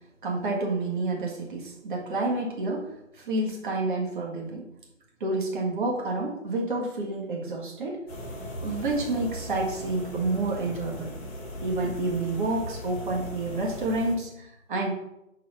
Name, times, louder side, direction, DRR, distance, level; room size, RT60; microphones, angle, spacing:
voice 1, 0.2-2.9 3.2-4.6 5.2-8.0 8.6-11.1 11.6-14.9, right 2 dB, 40° right, -1 dB, 1.8 m, -29 dB
sound 1, 8.1-14.1, left 1 dB, 5° left, 0.8 m, -38 dB
5.5 x 4.6 x 6.0 m, 0.85 s
hypercardioid pair, 155°, 40 cm